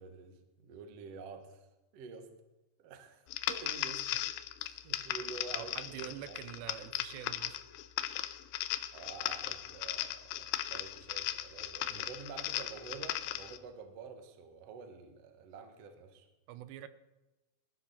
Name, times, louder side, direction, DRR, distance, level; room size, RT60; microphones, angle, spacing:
voice 1, 0.0-1.7 1.9-2.3 2.8-4.2 4.6-6.6 8.9-16.3, right 5 dB, 65° right, 7 dB, 1.5 m, -49 dB
sound 1, 3.3-13.6, left 13 dB, 90° left, 2.2 m, -37 dB
voice 2, 5.5-7.6 11.9-12.1 16.5-16.9, right 12 dB, 80° right, 13 dB, 2.8 m, -45 dB
20.0 x 12.5 x 4.2 m, 1.1 s
omnidirectional pair, 5.1 m